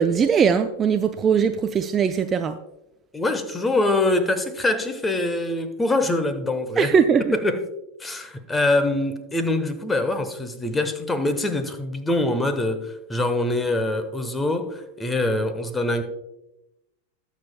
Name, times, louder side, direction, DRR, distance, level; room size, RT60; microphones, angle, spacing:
voice 1, 0.0-2.6 6.8-7.3, right 7 dB, 25° right, 9 dB, 0.4 m, -20 dB
voice 2, 3.1-6.9 7.3-7.7 8.0-16.0, left 2 dB, 10° left, 10 dB, 1.1 m, -24 dB
19.5 x 7.3 x 2.2 m, 0.92 s
figure-of-eight pair, 90°, 0 cm